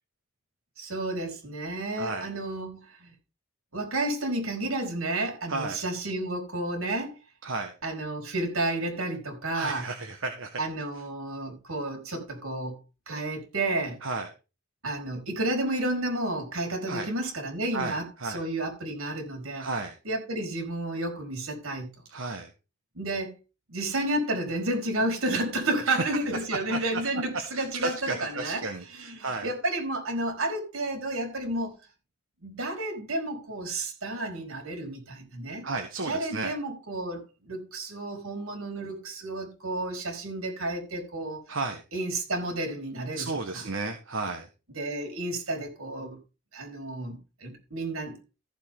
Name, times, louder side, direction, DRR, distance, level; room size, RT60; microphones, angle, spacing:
voice 1, 0.8-3.1 3.7-7.1 7.8-9.9 10.6-12.8 13.1-14.0 14.8-19.7 20.0-21.9 22.9-23.3 23.7-28.6 28.9-31.7 32.4-35.6 36.0-41.4 41.9-43.6 44.7-46.2 46.5-48.2, right 2 dB, 85° right, 4.5 m, -31 dB
voice 2, 2.0-2.3 5.5-5.8 7.4-7.7 9.5-10.6 13.1-13.2 14.0-14.3 16.9-17.1 17.7-18.4 19.6-19.9 22.1-22.5 25.9-26.0 26.5-27.0 27.5-29.5 35.6-36.5 38.8-38.9 41.5-41.8 43.1-44.5, right 3 dB, 65° right, 1.5 m, -33 dB
14.5 x 7.5 x 3.7 m
head